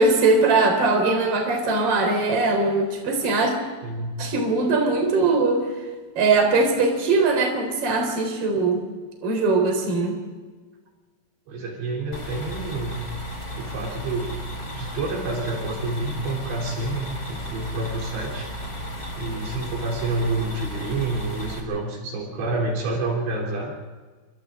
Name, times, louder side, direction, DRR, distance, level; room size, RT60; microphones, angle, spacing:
voice 1, 0.0-3.5 4.2-5.7 6.1-8.8 9.2-10.2, right 3 dB, 30° right, 3 dB, 4.7 m, -21 dB
voice 2, 3.8-4.2 11.5-13.1 13.6-14.4 14.7-18.5 19.2-23.7, right 2 dB, 65° right, -1 dB, 5.6 m, -28 dB
sound 1, 12.1-21.6, equal, 15° left, 3.3 m, -34 dB
29.0 x 26.5 x 3.8 m, 1.4 s
omnidirectional pair, 5.5 m